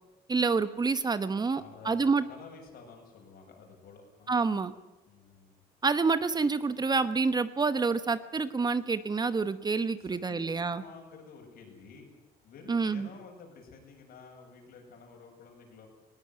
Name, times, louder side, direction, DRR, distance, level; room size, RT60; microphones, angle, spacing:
voice 1, 0.3-2.3 4.3-4.7 5.8-10.8 12.7-13.1, right 4 dB, 25° right, 12 dB, 1.0 m, -28 dB
voice 2, 1.5-4.4 5.0-5.6 10.0-12.1 12.4-15.9, left 5 dB, 65° left, 2 dB, 7.7 m, -51 dB
20.0 x 18.0 x 9.6 m, 1.0 s
cardioid pair, 110°, 17 cm